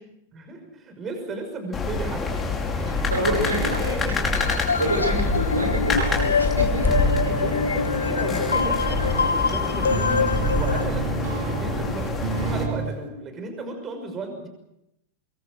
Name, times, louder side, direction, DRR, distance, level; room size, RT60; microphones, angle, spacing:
voice 1, 0.3-2.2 2.8-3.0 3.5-3.6 7.2-14.5, right 2 dB, 25° right, 5 dB, 6.0 m, -35 dB
sound 1, 1.7-12.6, left 3 dB, 20° left, 5.3 m, -26 dB
voice 2, 2.8-4.3 4.8-7.1, right 1 dB, 80° right, 2 dB, 5.7 m, -27 dB
sound 2, 4.3-10.9, left 5 dB, 75° left, 0.9 m, -25 dB
sound 3, 6.9-13.0, right 5 dB, 55° right, 2.8 m, -31 dB
25.0 x 23.0 x 6.5 m, 0.86 s
figure-of-eight pair, 90°, 0 cm